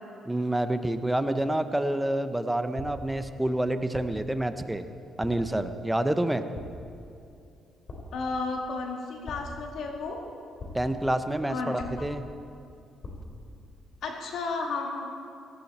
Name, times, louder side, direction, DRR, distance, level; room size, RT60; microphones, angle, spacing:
voice 1, 0.3-4.8 5.2-6.4 10.7-12.3, right 1 dB, 10° right, 9 dB, 0.9 m, -28 dB
sound 1, 2.8-3.2 3.9-4.3 5.2-5.6 6.5-7.0 7.9-8.3 9.3-9.8 10.6-11.0 11.8-12.3 13.0-13.5, left 2 dB, 45° left, 3.6 m, -42 dB
voice 2, 8.1-10.2 11.5-12.0 14.0-15.1, left 3 dB, 75° left, 1 dB, 2.1 m, -33 dB
17.0 x 16.5 x 4.3 m, 2.5 s
cardioid pair, 90°, 0 cm